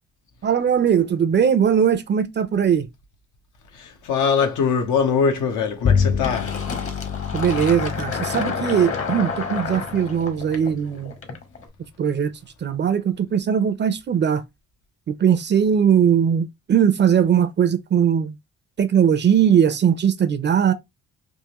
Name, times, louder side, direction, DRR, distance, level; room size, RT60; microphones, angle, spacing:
voice 1, 0.4-2.9 7.3-11.1 12.0-12.3 12.6-14.4 15.1-18.3 18.8-20.7, right 8 dB, 35° right, 0.5 m, -19 dB
voice 2, 3.7-6.6, left 6 dB, 80° left, 1.0 m, -22 dB
Bowed string instrument, 5.8-11.5, left 6 dB, 30° left, 0.4 m, -28 dB
Fill (with liquid), 6.2-11.6, left 5 dB, 45° left, 1.1 m, -30 dB
3.6 x 2.5 x 2.9 m
cardioid pair, 90°, 30 cm